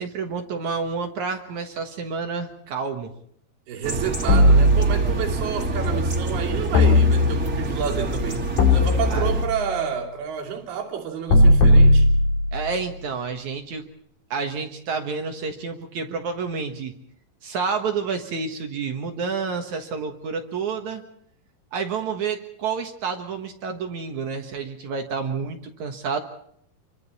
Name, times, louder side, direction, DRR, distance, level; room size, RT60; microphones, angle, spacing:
voice 1, 0.0-3.1 9.1-9.3 12.5-13.9 14.3-17.0 17.4-21.0 21.7-26.2, right 5 dB, 60° right, 5 dB, 2.4 m, -29 dB
voice 2, 3.7-12.1, right 8 dB, 75° right, 0 dB, 4.7 m, -30 dB
sound 1, 3.8-9.4, right 2 dB, 25° right, 2.5 m, -27 dB
sound 2, 4.3-5.4 6.7-7.7 8.6-9.7 11.3-12.7, left 1 dB, 60° left, 4.6 m, -17 dB
28.0 x 24.0 x 4.2 m, 0.66 s
omnidirectional pair, 4.5 m